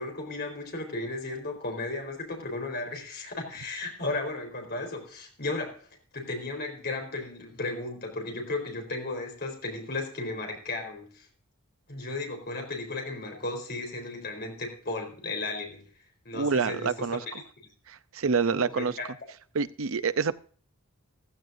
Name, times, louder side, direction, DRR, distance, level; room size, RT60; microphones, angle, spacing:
voice 1, 0.0-5.8 6.1-11.3 11.9-15.9 16.2-16.9 18.6-19.0, left 2 dB, 50° left, 2 dB, 4.4 m, -35 dB
voice 2, 16.3-17.4 17.9-19.0 19.5-20.3, right 5 dB, 70° right, 13 dB, 0.6 m, -27 dB
15.5 x 14.0 x 2.7 m, 0.43 s
head